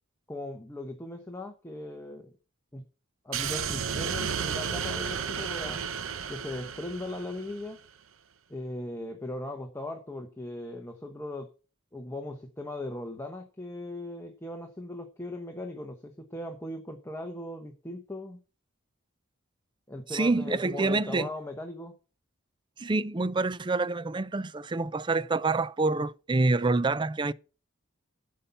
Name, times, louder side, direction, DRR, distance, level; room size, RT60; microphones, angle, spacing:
voice 1, 0.3-2.3 2.7-2.8 3.2-5.8 6.3-7.8 8.5-11.5 11.9-18.4 19.9-22.0, left 1 dB, 15° left, 1.1 m, -38 dB
sound 1, 3.3-7.7, right 7 dB, 85° right, 0.8 m, -33 dB
voice 2, 20.1-21.3 22.8-27.3, right 3 dB, 25° right, 0.4 m, -27 dB
9.9 x 5.5 x 6.9 m
head